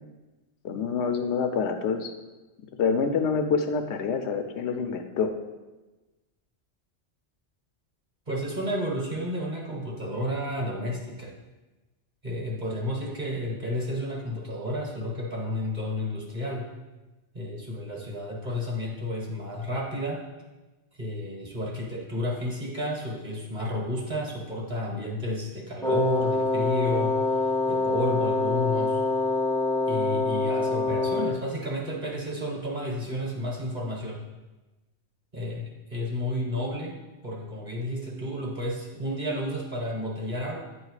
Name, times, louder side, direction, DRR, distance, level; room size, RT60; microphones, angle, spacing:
voice 1, 0.6-2.1 2.8-5.3, left 5 dB, 85° left, 7 dB, 0.9 m, -26 dB
voice 2, 8.3-11.3 12.2-16.7 17.3-20.2 20.9-29.0 29.9-34.2 35.3-36.9 37.2-40.6, left 1 dB, 40° right, -2 dB, 1.5 m, -31 dB
Wind instrument woodwind instrument, 25.8-31.5, left 3 dB, 5° left, 0.3 m, -25 dB
9.1 x 3.2 x 4.8 m, 1.1 s
omnidirectional pair, 1.1 m